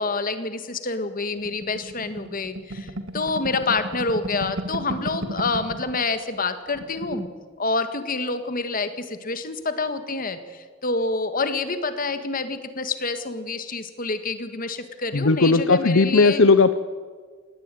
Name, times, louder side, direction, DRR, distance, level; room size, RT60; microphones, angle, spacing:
voice 1, 0.0-7.3 7.6-16.4, left 3 dB, 45° left, 10 dB, 1.8 m, -27 dB
sound 1, 1.4-6.0 6.3-6.4 6.7-7.3, right 1 dB, 75° right, 1.8 m, -34 dB
voice 2, 15.1-16.8, left 3 dB, 70° left, 12 dB, 0.8 m, -17 dB
19.0 x 17.0 x 9.2 m, 1.5 s
head